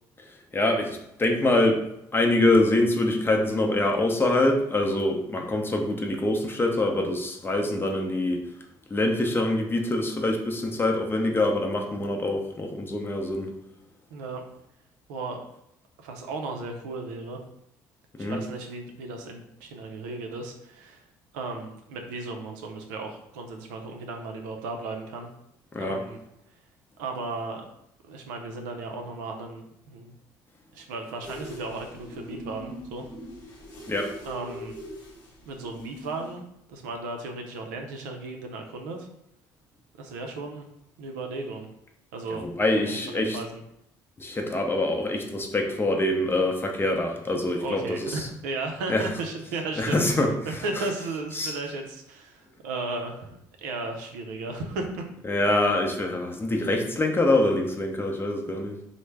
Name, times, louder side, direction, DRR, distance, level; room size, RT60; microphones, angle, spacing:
voice 1, 0.5-1.8 2.1-8.4 8.9-13.5 18.2-18.4 25.7-26.0 33.9-34.1 42.4-43.4 44.2-48.3 48.9-49.1 49.8-50.3 50.8-50.9 51.3-51.5 55.3-58.8, left 2 dB, 25° left, 3 dB, 0.6 m, -25 dB
voice 2, 14.1-14.4 15.1-15.4 16.0-17.4 18.2-21.1 21.3-25.3 25.8-26.2 27.0-27.6 28.1-30.1 30.7-33.0 34.2-34.7 35.4-36.4 36.7-39.1 40.0-40.6 41.0-41.7 42.1-42.5 42.9-43.6 47.6-50.1 50.4-55.0, right 3 dB, 85° right, 3 dB, 0.5 m, -35 dB
sound 1, 31.2-36.4, equal, 45° left, 1.1 m, -41 dB
3.1 x 2.1 x 3.3 m, 0.79 s
hypercardioid pair, 60°, 9 cm